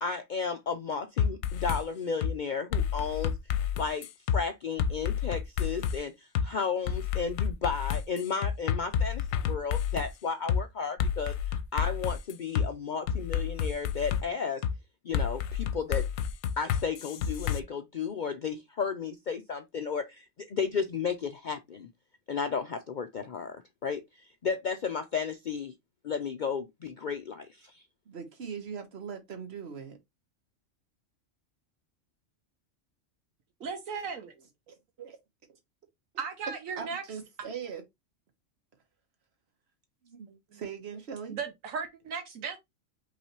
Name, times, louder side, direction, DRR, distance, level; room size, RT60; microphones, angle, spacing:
voice 1, 0.0-3.3 3.8-4.1 4.3-11.3 11.7-14.6 15.0-16.0 16.6-21.9 22.3-25.7 26.0-27.8, left 5 dB, 60° left, 0.5 m, -33 dB
sound 1, 1.2-1.8 2.2-2.3 2.7-4.4 4.8-6.0 6.3-6.5 6.9-10.1 10.5-10.6 11.0-12.7 13.1-14.2 14.6-14.8 15.1-17.6, left 8 dB, 80° left, 1.0 m, -29 dB
voice 2, 28.1-30.0 33.6-33.7 34.7-35.2 36.8-37.8 40.0-41.4, right 7 dB, 55° right, 1.3 m, -41 dB
voice 3, 33.6-34.3 36.2-37.0 40.3-40.6 41.3-42.6, right 5 dB, 80° right, 1.2 m, -36 dB
5.5 x 3.2 x 2.9 m
omnidirectional pair, 1.4 m